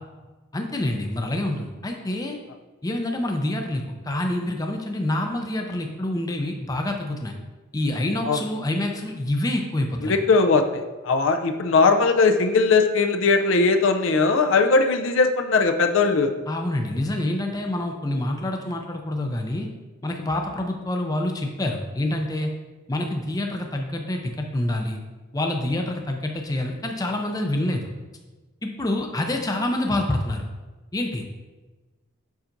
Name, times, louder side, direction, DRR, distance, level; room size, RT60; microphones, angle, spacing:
voice 1, 0.5-2.4 2.8-7.3 7.7-10.1 16.5-19.7 20.0-22.5 22.9-25.0 25.3-27.8 28.6-30.4 30.9-31.2, left 1 dB, 20° left, 3 dB, 0.5 m, -27 dB
voice 2, 10.0-16.3, left 4 dB, 70° left, 6 dB, 0.5 m, -19 dB
7.1 x 5.7 x 2.6 m, 1.2 s
head